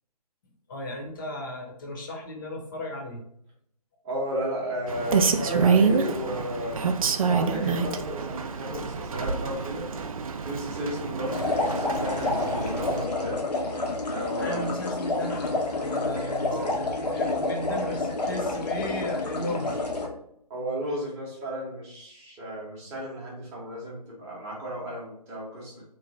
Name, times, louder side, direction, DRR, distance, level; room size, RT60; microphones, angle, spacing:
voice 1, 0.7-3.2 14.4-19.8 20.0-20.1, left 1 dB, 30° left, 0 dB, 0.7 m, -35 dB
voice 2, 4.0-6.8 7.2-9.9 10.4-13.4 14.1-14.7 16.5-16.8 20.5-25.8, equal, 15° right, -6 dB, 0.8 m, -33 dB
Rain, 4.9-13.1, right 5 dB, 60° right, 0.4 m, -27 dB
sound 1, 11.3-20.1, left 2 dB, 85° left, 0.9 m, -29 dB
3.1 x 2.2 x 3.6 m, 0.72 s
figure-of-eight pair, 150°, 21 cm